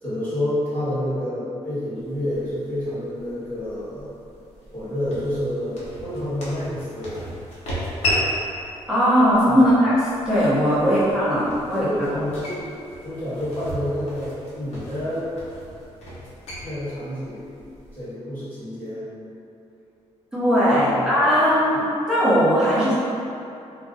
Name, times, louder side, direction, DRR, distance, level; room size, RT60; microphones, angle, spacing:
voice 1, 0.0-4.1 4.7-7.2 9.5-9.8 10.8-11.0 11.7-12.7 13.0-15.3 16.6-17.4 17.9-19.0 20.9-21.1, left 1 dB, 15° left, -13 dB, 1.3 m, -28 dB
sound 1, 2.0-18.1, left 1 dB, 75° left, 0.8 m, -34 dB
voice 2, 8.9-11.9 20.3-22.9, equal, 5° right, -11 dB, 0.8 m, -19 dB
2.4 x 2.2 x 3.8 m, 2.7 s
wide cardioid pair, 170°, 11 cm